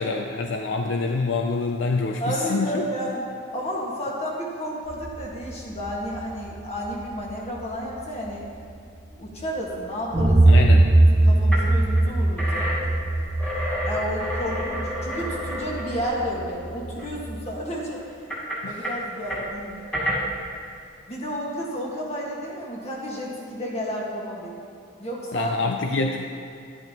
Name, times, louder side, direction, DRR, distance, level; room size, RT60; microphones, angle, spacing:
voice 1, 0.0-2.9 10.5-10.9 18.6-18.8 25.3-26.2, left 3 dB, 65° left, 3 dB, 0.5 m, -26 dB
voice 2, 2.2-3.2 3.5-8.4 9.1-10.6 11.2-13.3 13.9-18.0 18.6-19.9 21.1-24.5 25.0-25.5, equal, 30° left, -3 dB, 1.6 m, -31 dB
sound 1, 4.9-7.7 8.6-8.7 10.1-17.3, right 2 dB, 20° right, 0.4 m, -21 dB
sound 2, 10.9-11.0 11.5-11.7 12.0-16.6 17.0-17.1 17.9-20.6, equal, 10° left, 2.1 m, -30 dB
11.0 x 10.5 x 2.9 m, 2.5 s
head